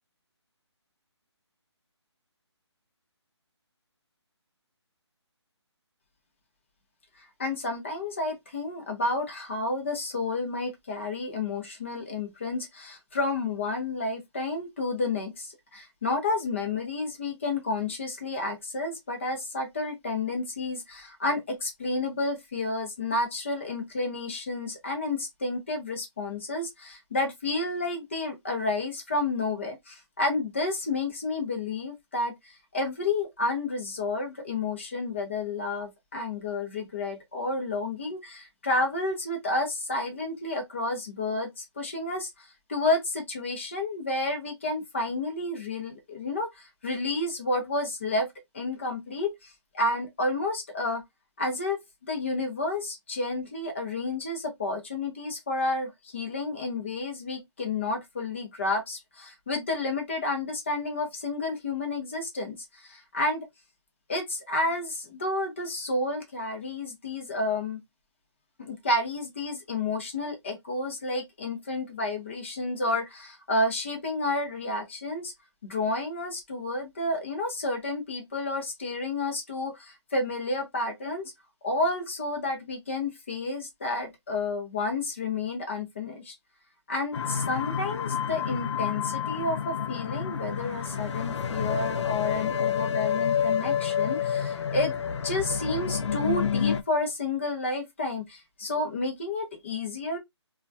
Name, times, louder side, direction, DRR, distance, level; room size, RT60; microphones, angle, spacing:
voice 1, 7.4-48.3 48.5-51.0 51.4-63.4 64.1-67.8 68.6-75.3 75.6-81.3 81.6-86.4 86.9-94.9 95.2-100.2, left 2 dB, 25° left, 0.5 m, -30 dB
sound 1, 87.1-96.8, left 7 dB, 75° left, 0.4 m, -29 dB
2.2 x 2.2 x 2.5 m
hypercardioid pair, 170°, 15 cm